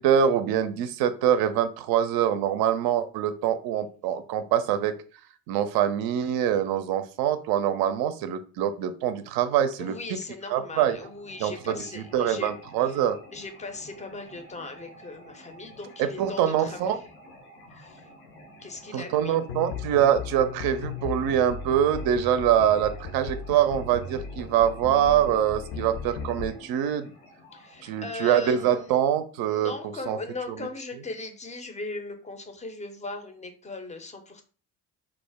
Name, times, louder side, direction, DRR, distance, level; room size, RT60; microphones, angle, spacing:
voice 1, 0.0-4.9 5.5-9.9 10.5-11.0 11.4-13.2 16.0-17.0 18.9-27.1 27.8-29.7 30.1-30.2, right 9 dB, 55° right, 11 dB, 0.5 m, -24 dB
voice 2, 9.8-12.5 12.8-13.0 13.3-17.0 17.7-18.1 18.6-19.4 27.5-29.0 29.4-34.4, left 3 dB, 15° left, 6 dB, 0.5 m, -39 dB
sound 1, 10.8-28.9, left 1 dB, 85° left, 0.9 m, -50 dB
sound 2, 19.5-26.5, left 5 dB, 65° left, 0.6 m, -37 dB
2.3 x 2.1 x 3.4 m, 0.39 s
hypercardioid pair, 60°, 45 cm